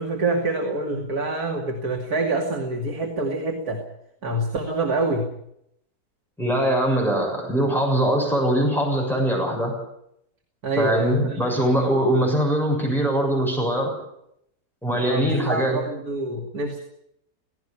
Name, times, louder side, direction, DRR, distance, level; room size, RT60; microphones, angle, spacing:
voice 1, 0.0-3.8 4.2-5.3 10.6-11.6 14.9-16.8, right 2 dB, 75° right, 1 dB, 3.1 m, -26 dB
voice 2, 6.4-9.7 10.8-13.9 14.8-15.8, right 1 dB, ahead, -1 dB, 6.9 m, -22 dB
17.5 x 17.0 x 9.8 m, 0.76 s
omnidirectional pair, 1.6 m